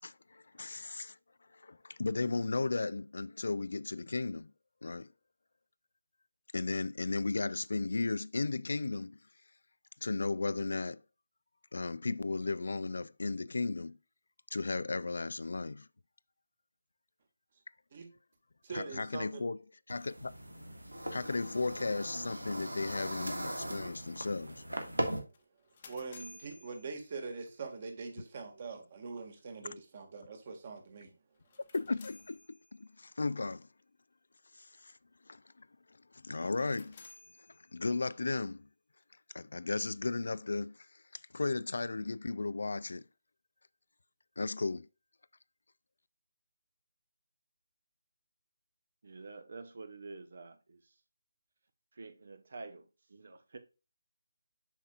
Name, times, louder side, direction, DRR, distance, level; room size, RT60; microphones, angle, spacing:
voice 1, 0.0-1.2 1.5-4.5 4.8-5.1 6.5-9.2 10.0-11.0 11.7-14.0 14.5-15.9 18.7-19.6 19.9-20.3 21.1-24.6 31.7-33.7 34.5-35.0 35.3-35.7 36.1-37.0 37.7-38.7 39.3-43.0 44.4-44.9, left 3 dB, 65° left, 0.3 m, -35 dB
voice 2, 18.6-19.4 25.9-31.1, right 4 dB, 40° right, 1.8 m, -43 dB
sound 1, 19.9-25.2, right 1 dB, 90° right, 1.7 m, -39 dB
sound 2, 25.3-27.6 31.3-33.0 36.4-38.2, left 3 dB, 35° left, 1.0 m, -57 dB
voice 3, 49.0-51.0 51.9-53.6, right 3 dB, 55° right, 1.0 m, -48 dB
7.2 x 5.6 x 2.4 m
figure-of-eight pair, 155°, 0 cm